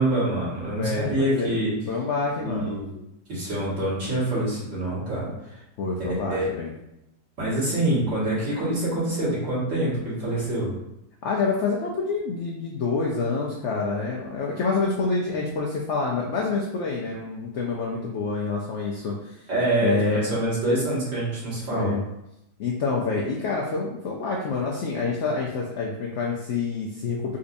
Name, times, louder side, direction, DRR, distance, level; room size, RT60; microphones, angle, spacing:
voice 1, 0.0-1.7 2.4-3.0 3.3-5.6 6.3-6.5 7.4-10.7 19.5-21.9, right 1 dB, 50° right, -9 dB, 1.9 m, -26 dB
voice 2, 0.8-1.5 1.9-2.8 5.8-6.7 11.2-19.4 19.8-20.2 21.7-22.0 22.6-27.4, left 4 dB, 75° left, -2 dB, 0.6 m, -27 dB
4.0 x 2.6 x 2.5 m, 0.86 s
omnidirectional pair, 1.7 m